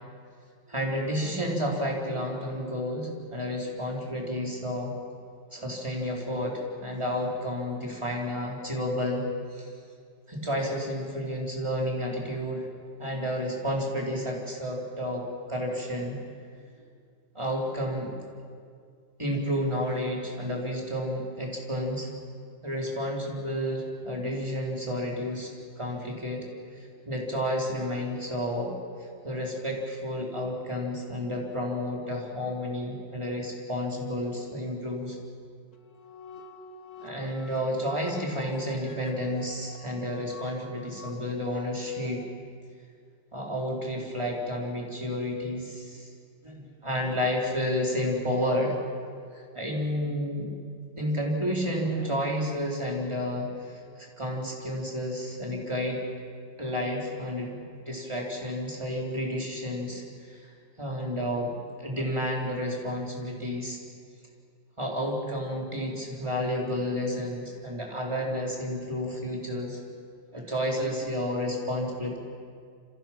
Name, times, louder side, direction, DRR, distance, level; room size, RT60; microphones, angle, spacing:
voice 1, 0.7-4.9 5.5-9.3 9.5-9.7 10.3-12.7 13.0-15.2 15.5-16.2 17.3-18.1 19.2-22.1 22.6-25.5 25.8-26.5 26.8-28.7 29.2-35.2 37.0-42.2 43.3-46.1 46.4-48.8 49.3-50.5 51.0-56.0 56.6-57.6 57.9-60.5 60.8-61.5 61.8-63.8 64.8-69.8 70.3-72.2, equal, 15° right, -1 dB, 4.1 m, -31 dB
sound 1, 35.7-42.3, left 3 dB, 50° left, 2.0 m, -46 dB
28.0 x 26.0 x 6.0 m, 2.2 s
omnidirectional pair, 2.1 m